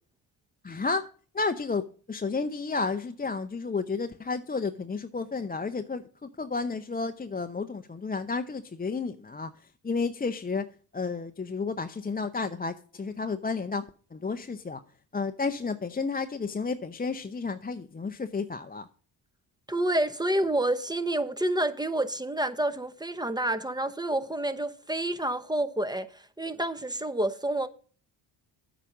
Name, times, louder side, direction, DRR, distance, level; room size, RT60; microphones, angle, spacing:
voice 1, 0.6-1.1 1.3-10.7 10.9-14.8 15.1-18.9, left 4 dB, 20° left, 0.6 m, -32 dB
voice 2, 19.7-27.7, right 1 dB, 10° right, 0.8 m, -28 dB
8.3 x 5.1 x 7.1 m
cardioid pair, 60°, 50 cm